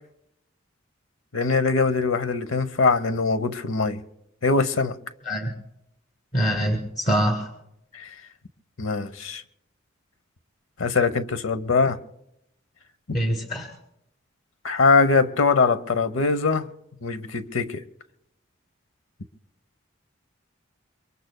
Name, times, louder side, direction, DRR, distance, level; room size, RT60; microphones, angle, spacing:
voice 1, 1.3-4.0 4.4-5.0 7.9-8.1 8.8-9.4 10.8-12.0 14.6-16.7 17.0-17.8, left 4 dB, 85° left, 0.8 m, -22 dB
voice 2, 6.3-7.5 13.1-13.7, equal, 40° left, 2.4 m, -24 dB
27.0 x 24.0 x 2.2 m
head